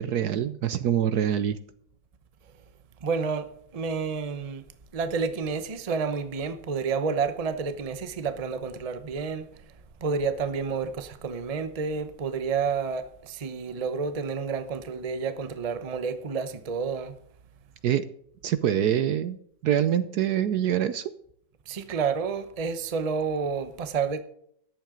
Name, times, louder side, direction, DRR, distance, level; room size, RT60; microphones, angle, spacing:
voice 1, 0.0-1.6 17.8-18.0 18.4-19.4 19.6-21.0, right 10 dB, 70° right, 1.1 m, -25 dB
voice 2, 3.0-4.6 4.9-9.5 10.0-17.2 21.7-24.2, right 5 dB, 30° right, 0.7 m, -30 dB
14.0 x 10.5 x 3.8 m
omnidirectional pair, 2.0 m